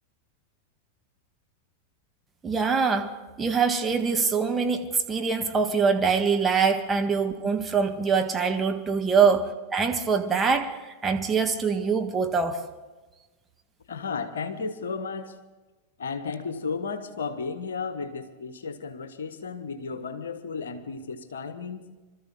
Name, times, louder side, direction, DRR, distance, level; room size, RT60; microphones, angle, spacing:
voice 1, 2.4-3.1 3.4-9.4 9.7-12.6, right 5 dB, 15° right, 1.6 m, -24 dB
voice 2, 13.9-15.3 16.0-21.9, left 5 dB, 65° left, 1.3 m, -34 dB
25.5 x 13.5 x 3.8 m
figure-of-eight pair, 90°, 0 cm